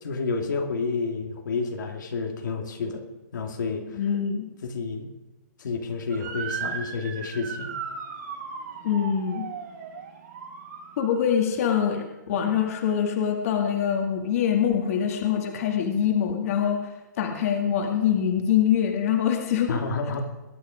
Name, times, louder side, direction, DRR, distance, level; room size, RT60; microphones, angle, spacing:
voice 1, 0.0-3.0 3.3-4.0 4.6-5.1 5.6-7.8 19.7-20.2, left 4 dB, 80° left, 2 dB, 2.4 m, -30 dB
voice 2, 3.9-4.5 8.8-9.5 11.0-19.7, left 8 dB, 50° left, 3 dB, 2.0 m, -24 dB
Motor vehicle (road) / Siren, 6.1-11.4, right 6 dB, 70° right, 6.1 m, -36 dB
21.5 x 9.5 x 5.1 m, 1.1 s
hypercardioid pair, 160°, 10 cm